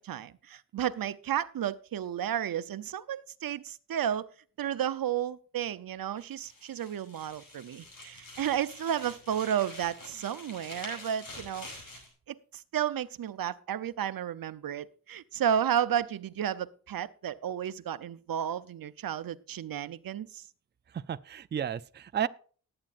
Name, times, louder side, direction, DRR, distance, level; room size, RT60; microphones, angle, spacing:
voice 1, 0.0-4.3 4.6-11.7 12.3-20.4, right 9 dB, 90° right, 0.7 m, -32 dB
sound 1, 6.2-12.1, left 2 dB, 75° left, 5.6 m, -47 dB
voice 2, 20.9-22.3, right 9 dB, 30° right, 0.4 m, -32 dB
18.5 x 8.8 x 2.5 m
wide cardioid pair, 135°, 34 cm